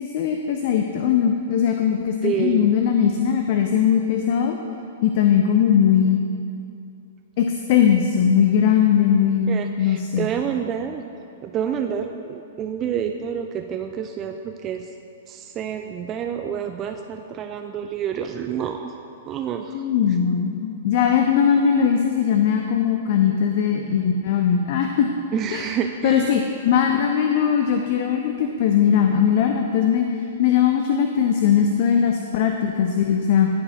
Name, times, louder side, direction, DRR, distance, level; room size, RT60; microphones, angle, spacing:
voice 1, 0.0-4.6 5.0-6.2 7.4-10.3 19.7-25.1 25.5-25.7 26.0-30.1 30.4-33.5, left 8 dB, 50° left, 4 dB, 0.4 m, -20 dB
voice 2, 2.2-2.7 9.5-11.0 11.4-14.9 15.3-18.9 19.3-19.8 25.3-26.4, right 8 dB, 30° right, 5 dB, 0.3 m, -28 dB
14.0 x 4.9 x 2.8 m, 2.6 s
figure-of-eight pair, 110°, 0 cm